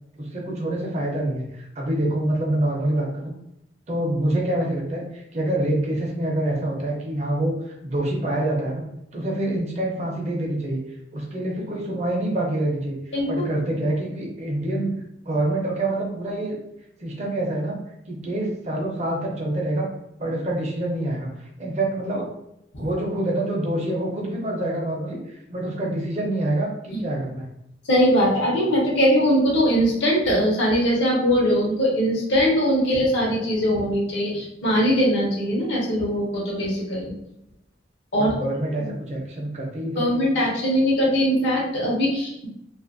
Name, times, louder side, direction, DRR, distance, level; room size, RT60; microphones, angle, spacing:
voice 1, 0.1-3.3 3.9-7.5 7.8-8.8 9.1-10.8 11.1-13.0 13.3-15.0 15.2-16.6 17.0-17.8 18.1-19.9 20.2-22.3 22.8-27.5 34.3-34.4 38.2-40.2, right 1 dB, 40° right, -1 dB, 0.6 m, -26 dB
voice 2, 27.9-37.1 38.1-38.3 38.8-38.9 39.9-42.5, equal, 75° left, -4 dB, 0.9 m, -21 dB
2.6 x 2.5 x 2.5 m, 0.81 s
head